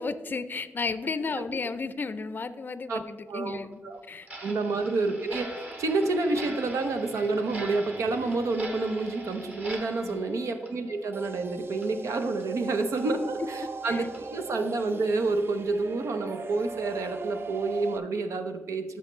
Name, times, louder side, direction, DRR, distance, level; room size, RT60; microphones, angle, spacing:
voice 1, 0.0-3.8 4.1-4.6 10.0-10.3 13.9-14.1, left 4 dB, 40° left, 13 dB, 0.4 m, -33 dB
Clock, 4.2-11.5 11.8-11.9 12.4-12.5 13.0-13.1 13.6-13.7 14.1-14.2 14.7-14.9, right 1 dB, 35° right, 1.2 m, -43 dB
voice 2, 4.4-19.0, right 3 dB, 90° right, 7 dB, 0.7 m, -29 dB
Guitar, 5.3-8.6, right 1 dB, 70° right, 1.8 m, -47 dB
sound 1, 11.1-18.0, right 4 dB, 50° right, 0.5 m, -39 dB
13.5 x 5.5 x 3.2 m, 1.3 s
cardioid pair, 80°, 5 cm